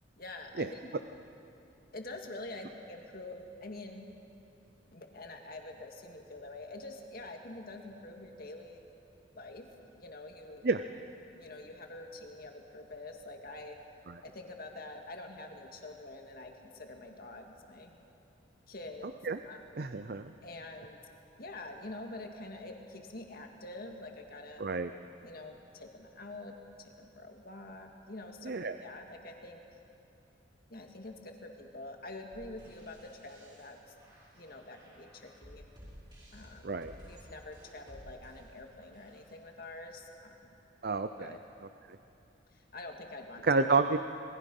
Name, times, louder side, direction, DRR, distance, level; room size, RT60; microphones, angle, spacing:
voice 1, 0.2-0.9 1.9-4.1 4.9-8.8 9.3-9.7 10.0-10.7 11.4-13.8 14.2-18.0 18.7-19.1 19.4-19.9 20.4-21.0 21.4-24.6 25.2-29.6 30.7-33.9 34.3-35.6 36.3-36.7 37.0-40.5 41.2-41.4 42.5-43.5, left 2 dB, 50° left, 2 dB, 2.1 m, -46 dB
voice 2, 19.8-20.3 24.6-24.9 28.4-28.8 36.6-36.9 40.8-41.3 43.4-44.0, right 4 dB, 50° right, 9 dB, 0.5 m, -29 dB
sound 1, 32.3-39.3, equal, 25° right, 6.2 m, -55 dB
27.0 x 20.5 x 5.4 m, 2.9 s
head